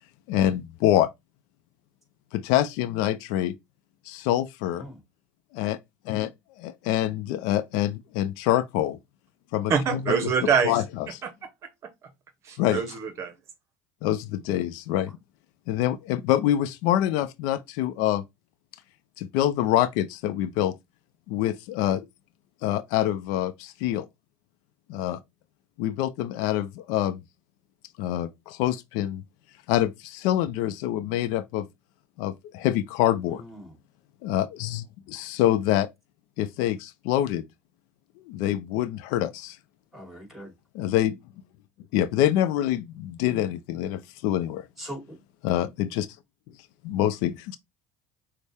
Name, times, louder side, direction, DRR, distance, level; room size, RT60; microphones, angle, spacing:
voice 1, 0.3-1.1 2.3-3.5 4.1-4.8 5.5-5.8 6.1-6.3 6.6-9.0 9.5-10.2 10.6-10.8 12.6-12.8 14.0-15.1 15.7-18.2 19.2-20.7 21.3-22.0 22.6-24.1 24.9-25.2 25.8-27.2 28.0-29.2 29.7-31.7 32.2-33.4 34.2-35.9 36.4-37.4 38.2-39.6 40.7-41.2 41.9-44.7 45.4-46.1 46.8-47.6, left 12 dB, 75° left, 0.5 m, -25 dB
voice 2, 9.7-10.8 11.2-11.3 12.4-13.3, right 6 dB, 45° right, 0.8 m, -25 dB
voice 3, 33.3-33.8 39.9-40.5 44.8-45.2, equal, 5° right, 2.4 m, -41 dB
6.2 x 2.1 x 3.4 m
supercardioid pair, 105°, 7 cm